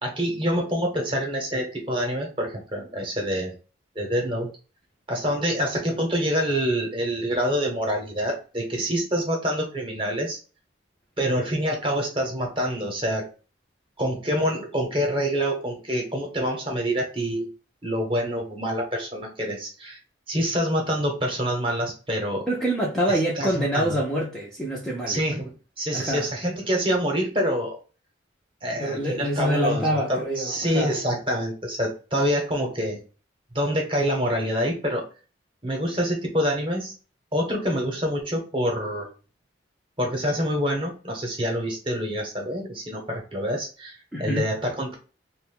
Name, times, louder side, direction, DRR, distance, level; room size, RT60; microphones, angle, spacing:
voice 1, 0.0-3.5 3.9-4.5 5.1-10.4 11.2-13.3 14.0-17.5 17.8-20.0 20.3-22.5 23.1-24.0 25.1-27.8 28.6-33.0 33.5-35.0 35.6-36.9 37.3-39.1 40.0-44.9, equal, 25° right, 0.8 m, -26 dB
voice 2, 22.5-25.2 25.9-26.3 28.8-30.9 44.1-44.5, equal, 5° left, 0.4 m, -26 dB
2.5 x 2.2 x 3.5 m
head